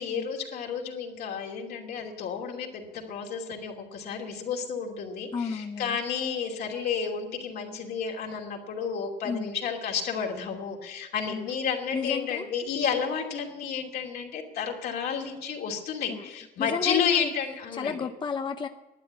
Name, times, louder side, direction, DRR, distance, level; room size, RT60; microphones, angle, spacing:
voice 1, 0.0-18.0, left 6 dB, 70° left, 0 dB, 2.7 m, -31 dB
voice 2, 5.3-6.0 9.2-9.5 11.3-11.5 11.9-12.5 16.1-16.2 16.6-17.3 17.8-18.7, left 5 dB, 25° left, 7 dB, 0.6 m, -32 dB
12.0 x 9.3 x 9.4 m, 1.1 s
cardioid pair, 110°, 17 cm